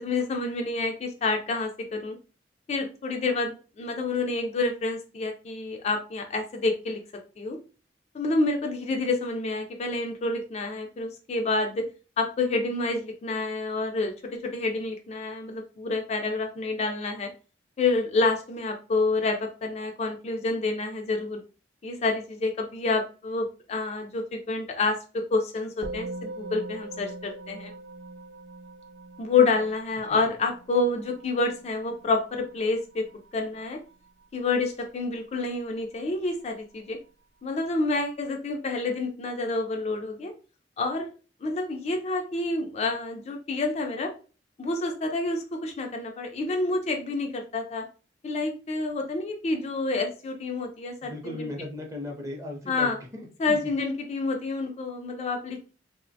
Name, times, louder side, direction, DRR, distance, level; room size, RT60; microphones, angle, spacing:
voice 1, 0.0-2.2 2.7-7.0 7.4-7.6 8.1-11.9 12.2-14.1 14.4-17.3 17.8-21.4 21.8-27.7 29.2-33.1 33.3-33.8 34.3-37.0 37.4-40.3 40.8-41.1 41.4-44.1 44.6-47.9 48.2-51.5 52.7-53.0 53.4-55.7, left 3 dB, 35° left, 4 dB, 0.3 m, -28 dB
Musical instrument, 25.8-35.3, right 2 dB, 80° right, 0.4 m, -43 dB
voice 2, 51.0-53.7, left 2 dB, 15° right, 0 dB, 0.6 m, -37 dB
2.8 x 2.1 x 2.6 m, 0.36 s
head